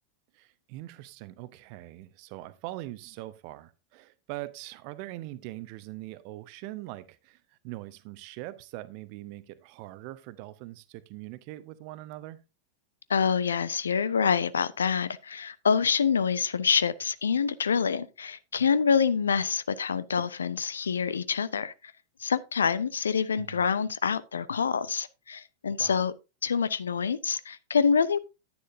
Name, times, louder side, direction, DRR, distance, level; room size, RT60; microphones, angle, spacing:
voice 1, 0.3-12.4 23.4-23.6 25.8-26.0, right 17 dB, 45° right, 0.8 m, -42 dB
voice 2, 13.1-21.7 22.2-26.1 26.4-28.2, left 6 dB, 70° left, 0.5 m, -26 dB
10.0 x 9.6 x 2.7 m
figure-of-eight pair, 90°, 0 cm